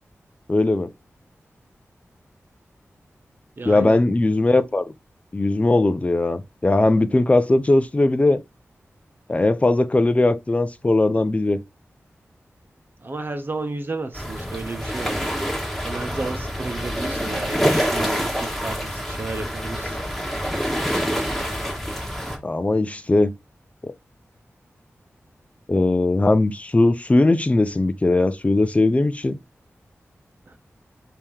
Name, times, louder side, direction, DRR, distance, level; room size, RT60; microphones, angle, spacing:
voice 1, 0.5-0.9 3.6-4.9 5.3-8.4 9.3-11.6 22.4-23.3 23.8-23.9 25.7-29.4, left 2 dB, 25° left, 0.5 m, -19 dB
voice 2, 3.6-4.0 13.0-15.2 15.8-20.0 30.5-30.6, right 3 dB, 45° right, 1.0 m, -32 dB
sound 1, 14.1-22.4, equal, 5° left, 1.5 m, -26 dB
3.7 x 2.9 x 4.8 m
wide cardioid pair, 75°, 5 cm